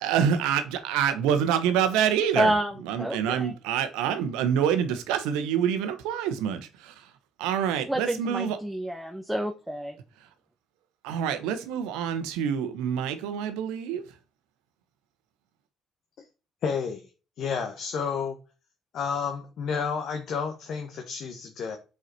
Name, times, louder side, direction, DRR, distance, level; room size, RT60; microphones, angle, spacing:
voice 1, 0.0-7.1 7.4-8.6 11.0-14.1, right 8 dB, 80° right, 1.0 m, -27 dB
voice 2, 2.4-2.7 3.0-3.5 7.9-9.9, right 1 dB, 10° right, 1.1 m, -28 dB
voice 3, 16.6-17.0 17.4-18.4 18.9-21.8, left 6 dB, 65° left, 1.1 m, -30 dB
6.4 x 4.8 x 4.3 m
hypercardioid pair, 55°, 0 cm